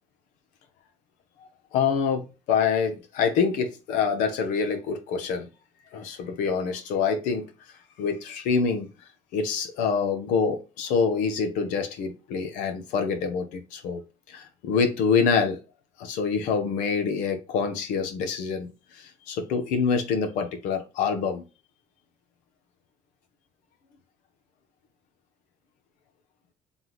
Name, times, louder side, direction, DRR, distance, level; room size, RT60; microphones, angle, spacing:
voice 1, 1.7-5.5 5.9-7.5 8.0-8.9 9.3-14.0 14.3-15.6 16.0-18.7 18.9-21.4, left 5 dB, 85° left, 0.8 m, -26 dB
3.6 x 3.0 x 3.9 m
cardioid pair, 85°, 13 cm